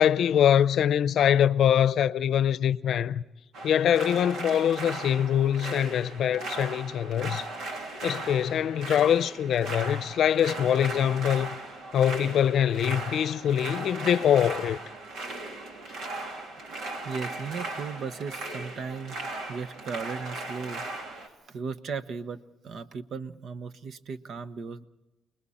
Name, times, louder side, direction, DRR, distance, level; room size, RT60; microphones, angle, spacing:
voice 1, 0.0-3.2 3.6-7.4 8.0-11.5 11.9-14.8, left 9 dB, 70° left, 0.7 m, -23 dB
sound 1, 3.5-21.3, right 2 dB, 80° right, 2.9 m, -37 dB
voice 2, 17.0-19.2 19.5-20.9 21.2-24.9, right 5 dB, 60° right, 1.0 m, -36 dB
29.5 x 20.5 x 4.3 m
cardioid pair, 90°, 0 cm